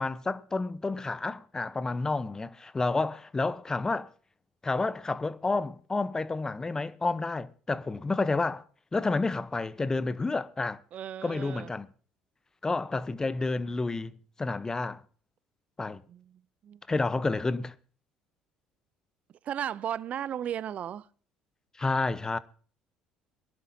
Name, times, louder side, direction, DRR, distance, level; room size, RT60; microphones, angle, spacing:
voice 1, 0.0-4.1 4.6-8.6 8.9-10.8 11.2-11.9 12.6-15.0 15.8-16.0 16.9-17.7 21.8-22.4, left 3 dB, 20° left, 0.9 m, -30 dB
voice 2, 10.9-11.7 16.1-16.2 16.6-16.8 19.4-21.1, right 10 dB, 50° right, 0.5 m, -35 dB
22.5 x 11.5 x 2.8 m
hypercardioid pair, 65°, 3 cm